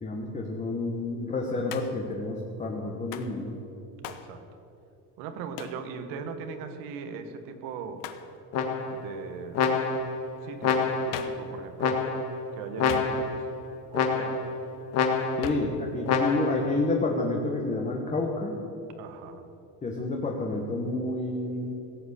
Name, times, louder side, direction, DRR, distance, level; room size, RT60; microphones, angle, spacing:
voice 1, 0.0-3.6 15.4-18.6 19.8-21.7, left 2 dB, 20° left, 0 dB, 1.4 m, -29 dB
Hands, 1.7-2.1 3.1-3.4 4.0-4.3 5.6-5.8 8.0-8.3 11.1-11.5 12.9-13.5 15.4-15.8, left 9 dB, 70° left, 1.1 m, -39 dB
voice 2, 4.0-4.4 5.2-8.1 8.9-10.0 10.4-12.0 12.5-13.4 13.9-14.5 19.0-19.4, right 6 dB, 85° right, 8 dB, 1.6 m, -39 dB
sound 1, 8.5-9.1 9.5-10.2 10.6-11.3 11.8-12.4 12.8-13.4 13.9-14.5 14.9-15.6 16.1-16.7, left 5 dB, 50° left, 1.7 m, -27 dB
17.0 x 8.1 x 8.3 m, 2.8 s
cardioid pair, 150°, 34 cm